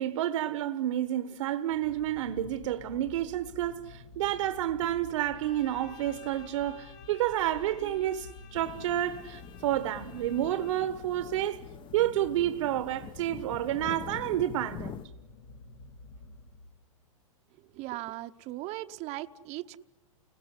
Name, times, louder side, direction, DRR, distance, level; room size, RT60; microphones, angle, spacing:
voice 1, 0.0-11.6 11.9-15.0, right 12 dB, 65° right, 1.2 m, -30 dB
sound 1, 1.7-17.0, left 3 dB, 65° left, 2.2 m, -50 dB
Bowed string instrument, 5.3-11.2, left 9 dB, 50° left, 2.0 m, -54 dB
sound 2, 8.5-15.1, left 8 dB, 30° left, 1.0 m, -45 dB
voice 2, 17.6-19.8, right 16 dB, 40° right, 0.9 m, -38 dB
30.0 x 20.0 x 9.9 m
hypercardioid pair, 120°, 17 cm